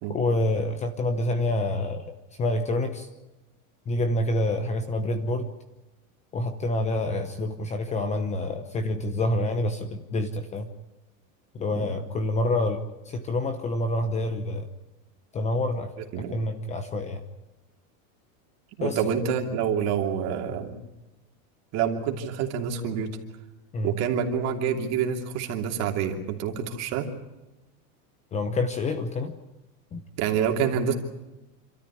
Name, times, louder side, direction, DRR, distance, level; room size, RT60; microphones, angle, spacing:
voice 1, 0.1-2.1 2.4-3.1 3.9-5.5 6.3-10.7 11.5-14.7 15.3-15.9 16.3-17.2 18.8-19.0 23.7-23.9 28.3-29.3 29.9-30.0, left 1 dB, 15° left, 9 dB, 0.9 m, -27 dB
voice 2, 18.8-20.8 21.7-23.1 23.8-27.1 30.2-30.9, right 7 dB, 40° right, 3 dB, 2.9 m, -27 dB
27.5 x 13.5 x 9.9 m, 1.0 s
supercardioid pair, 170°, 41 cm